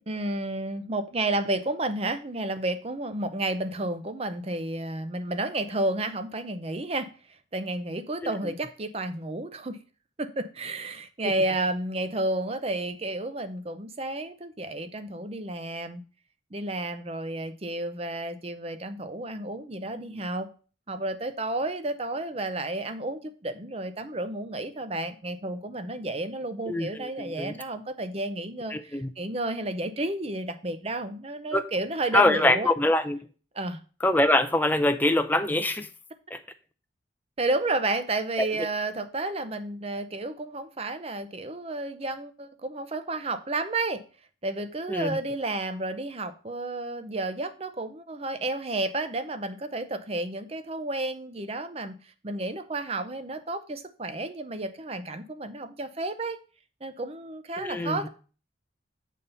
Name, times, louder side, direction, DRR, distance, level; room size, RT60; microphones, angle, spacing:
voice 1, 0.1-9.8 10.2-16.0 16.5-20.5 20.9-32.7 33.5-33.8 37.4-44.0 44.4-56.4 56.8-58.1, right 2 dB, 30° right, 10 dB, 0.6 m, -31 dB
voice 2, 26.7-27.5 28.7-29.1 31.5-31.6 32.1-33.2 34.0-35.9 36.3-36.4 38.4-38.5 44.9-45.2 57.6-58.1, left 1 dB, 10° left, 8 dB, 0.5 m, -24 dB
7.3 x 4.0 x 5.4 m, 0.37 s
head